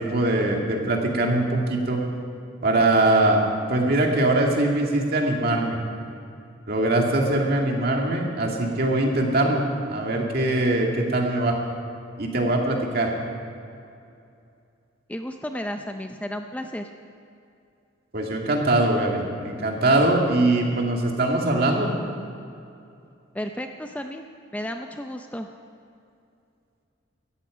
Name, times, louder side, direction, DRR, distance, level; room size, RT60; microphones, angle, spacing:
voice 1, 0.0-2.0 2.6-3.4 3.7-5.8 6.7-9.6 9.9-11.5 12.2-13.1 18.1-21.9, right 2 dB, 50° right, 0 dB, 2.2 m, -22 dB
voice 2, 15.1-16.9 23.3-24.2 24.5-25.5, equal, 5° left, 5 dB, 0.5 m, -33 dB
17.5 x 14.0 x 5.0 m, 2.5 s
head